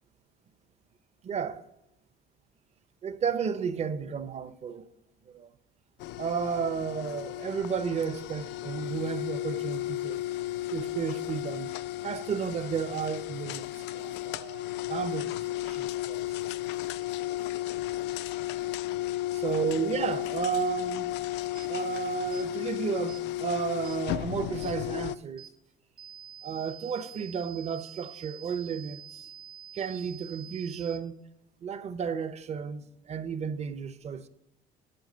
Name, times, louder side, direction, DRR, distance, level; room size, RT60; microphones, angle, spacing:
voice 1, 1.2-1.6 3.0-4.9 5.3-5.5 6.2-10.2 10.7-11.7 12.0-16.2 19.3-21.2 21.7-25.5 26.4-29.3 29.7-31.1 31.6-34.3, right 7 dB, 40° right, 0.7 m, -33 dB
sound 1, 6.0-25.2, left 15 dB, 90° left, 0.4 m, -34 dB
sound 2, 21.5-21.7 22.3-22.5 23.1-23.2 23.8-24.0 24.6-24.8 25.4-25.5 26.0-31.0, right 9 dB, 65° right, 2.1 m, -47 dB
8.8 x 7.8 x 6.6 m
cardioid pair, 110°, 17 cm